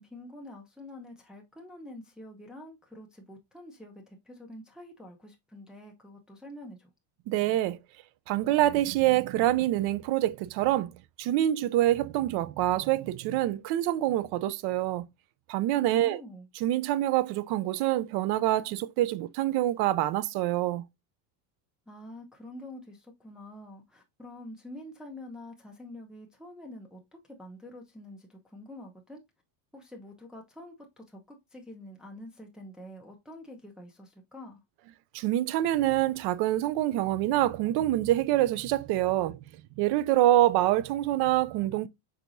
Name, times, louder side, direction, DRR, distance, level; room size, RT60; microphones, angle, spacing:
voice 1, 0.0-6.9 16.0-16.5 21.9-29.2 29.7-34.6, left 1 dB, ahead, 0.8 m, -47 dB
voice 2, 7.3-7.8 8.3-10.9 11.2-15.1 15.5-16.2 16.6-20.8 35.1-39.4 39.8-41.9, right 14 dB, 55° right, 0.5 m, -26 dB
4.6 x 4.1 x 2.6 m
supercardioid pair, 120°, 47 cm